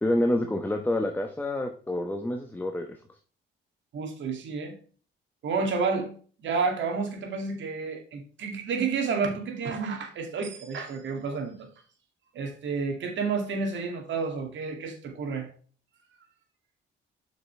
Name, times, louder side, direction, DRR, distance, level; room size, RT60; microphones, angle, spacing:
voice 1, 0.0-2.9, left 1 dB, 10° left, 5 dB, 1.0 m, -27 dB
voice 2, 3.9-4.8 5.4-6.1 6.4-11.7 12.3-15.5, right 4 dB, 70° right, 4 dB, 2.4 m, -30 dB
7.6 x 5.9 x 3.3 m, 0.41 s
cardioid pair, 90°, 20 cm